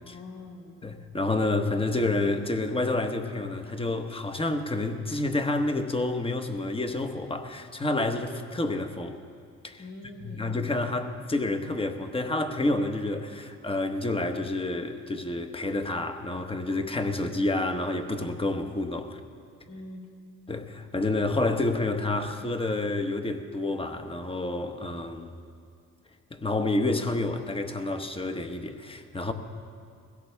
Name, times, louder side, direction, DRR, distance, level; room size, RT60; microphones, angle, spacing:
voice 1, 0.0-0.9 9.8-10.6 19.6-20.1, left 2 dB, 85° left, 3.3 m, -44 dB
voice 2, 0.8-9.2 9.6-9.8 10.2-19.2 20.5-25.3 26.3-29.3, left 2 dB, 20° left, 1.2 m, -29 dB
21.5 x 16.5 x 3.5 m
cardioid pair, 90°, 30 cm